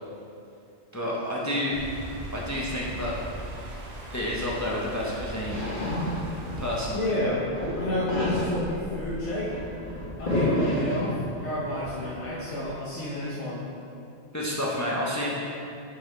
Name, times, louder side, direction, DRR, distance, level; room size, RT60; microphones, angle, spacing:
voice 1, 0.9-1.8 2.3-3.1 3.5-3.7 4.1-5.6 6.6-7.1 14.3-15.3, left 1 dB, 20° left, -5 dB, 0.6 m, -30 dB
sound 1, 1.7-7.0, right 1 dB, 45° right, 0.6 m, -39 dB
sound 2, 4.7-7.0 7.3-11.4 11.7-12.7, left 1 dB, 45° left, 1.4 m, -30 dB
voice 2, 6.9-7.4 7.8-9.5 10.2-13.6, left 1 dB, 80° left, -7 dB, 1.1 m, -30 dB
6.3 x 4.0 x 4.1 m, 2.6 s
omnidirectional pair, 1.2 m